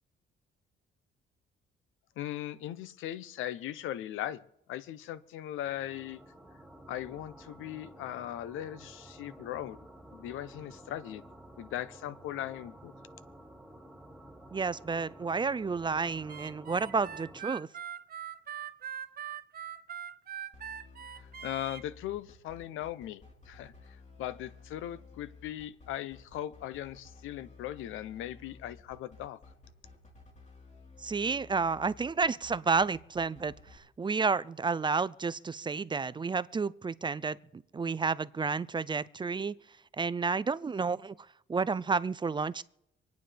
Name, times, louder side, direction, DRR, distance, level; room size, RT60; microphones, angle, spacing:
voice 1, 2.2-4.4 4.7-6.2 6.9-9.8 10.1-11.2 11.6-12.9 21.1-23.7 24.2-29.4, left 12 dB, 90° left, 0.8 m, -39 dB
sound 1, 5.6-17.4, right 1 dB, ahead, 2.4 m, -52 dB
voice 2, 14.5-17.7 31.0-39.6 40.0-41.1 41.5-42.6, right 4 dB, 25° right, 0.4 m, -31 dB
Harmonica, 16.3-21.8, right 9 dB, 50° right, 0.9 m, -42 dB
sound 2, 20.5-33.8, left 4 dB, 35° left, 3.9 m, -54 dB
26.5 x 9.3 x 3.4 m
cardioid pair, 90°, 20 cm